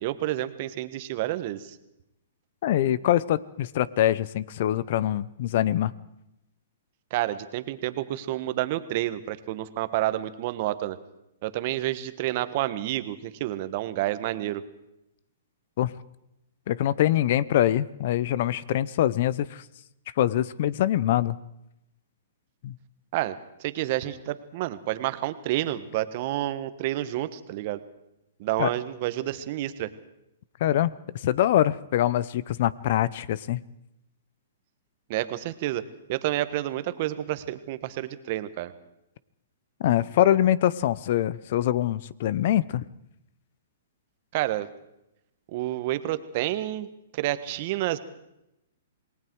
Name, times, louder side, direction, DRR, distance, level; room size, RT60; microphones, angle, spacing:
voice 1, 0.0-1.8 7.1-11.0 11.4-14.6 23.1-27.8 28.4-29.9 35.1-38.7 44.3-44.7 45.5-46.9 47.1-48.0, right 15 dB, 45° right, 12 dB, 1.4 m, -29 dB
voice 2, 2.6-5.9 15.8-16.0 16.7-19.6 20.2-21.4 22.6-22.7 28.6-28.7 30.6-33.6 39.8-42.8, left 12 dB, 55° left, 20 dB, 0.8 m, -24 dB
28.0 x 19.5 x 4.8 m, 0.87 s
hypercardioid pair, 135°, 0 cm